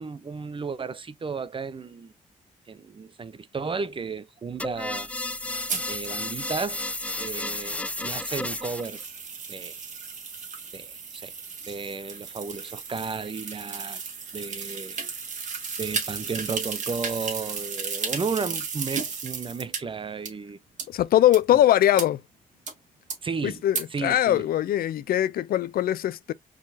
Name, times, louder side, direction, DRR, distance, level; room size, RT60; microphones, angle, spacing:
voice 1, 0.0-2.1 2.7-5.1 5.9-6.8 7.2-9.0 9.5-9.7 10.7-11.3 11.6-14.0 14.3-15.0 15.8-20.6 21.5-21.6 23.2-23.6 23.9-24.4, right 5 dB, 35° right, 0.7 m, -33 dB
sound 1, 4.6-9.0, left 2 dB, 10° left, 0.3 m, -32 dB
sound 2, 5.7-19.8 20.3-20.4 20.8-20.9 21.3-21.4 22.0-22.1 22.7-22.8 23.1-23.2 23.7-23.8, right 5 dB, 55° right, 2.2 m, -35 dB
voice 2, 20.9-22.2 23.4-26.3, left 12 dB, 80° left, 0.5 m, -21 dB
4.7 x 4.0 x 2.7 m
cardioid pair, 75°, 15 cm